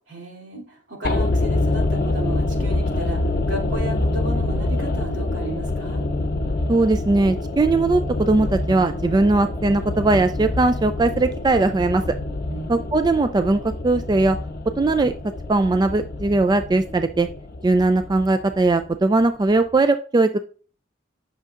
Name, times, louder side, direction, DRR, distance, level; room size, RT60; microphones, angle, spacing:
voice 1, 0.1-6.1 12.5-13.0, right 1 dB, 80° right, -2 dB, 2.9 m, -34 dB
sound 1, 1.0-19.2 19.5-19.6, left 2 dB, 55° left, 0.7 m, -26 dB
voice 2, 6.7-12.0 12.7-14.4 14.8-15.1 15.5-17.3 17.6-20.4, right 2 dB, 20° right, 9 dB, 0.3 m, -19 dB
11.0 x 6.4 x 2.5 m, 0.41 s
head